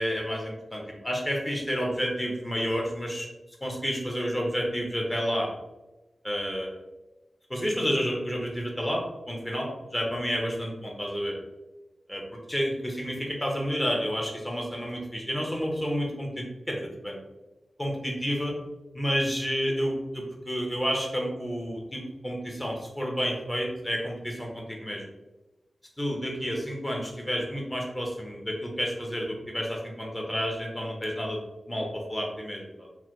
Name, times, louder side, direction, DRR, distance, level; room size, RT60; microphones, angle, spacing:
voice 1, 0.0-3.3 3.6-5.5 6.2-6.8 7.5-11.4 12.1-17.2 17.8-18.5 18.9-25.0 26.0-31.4 31.7-32.9, equal, 20° left, 0 dB, 0.8 m, -30 dB
3.1 x 2.1 x 3.0 m, 1.1 s
cardioid pair, 55°, 0 cm